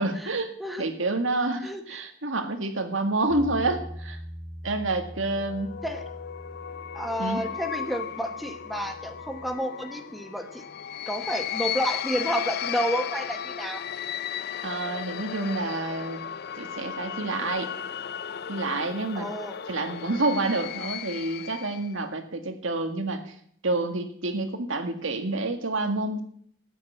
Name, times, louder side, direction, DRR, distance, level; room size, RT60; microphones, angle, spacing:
voice 1, 0.0-0.5 0.8-4.2 4.6-5.7 7.2-7.4 14.6-16.2 16.6-17.7 18.5-19.3 19.7-23.4 23.6-26.2, right 2 dB, 70° right, 6 dB, 1.9 m, -28 dB
voice 2, 1.6-2.0 5.8-6.0 6.9-10.6 11.1-13.8 19.1-19.5, equal, ahead, 5 dB, 1.1 m, -30 dB
Bass guitar, 3.3-9.5, equal, 45° right, 3.4 m, -43 dB
sound 1, 5.1-21.9, left 9 dB, 50° left, 0.5 m, -35 dB
13.0 x 9.1 x 8.1 m, 0.64 s
head